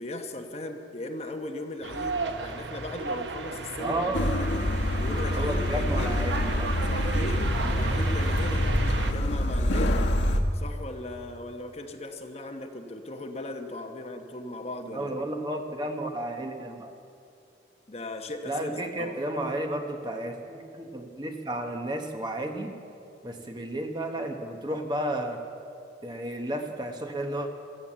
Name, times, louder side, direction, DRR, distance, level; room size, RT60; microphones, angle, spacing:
voice 1, 0.0-4.6 5.0-6.2 6.7-10.0 10.5-15.2 17.9-19.2, left 1 dB, 35° left, 4 dB, 1.0 m, -38 dB
sound 1, 1.8-9.1, right 3 dB, 75° right, 0.9 m, -34 dB
voice 2, 3.8-4.4 5.4-6.7 14.9-16.9 18.5-22.7 23.2-25.4 26.0-27.5, right 1 dB, 25° right, 4 dB, 1.0 m, -32 dB
sound 2, 4.1-10.4, left 1 dB, 85° left, 1.2 m, -26 dB
15.0 x 13.0 x 7.4 m, 2.5 s
head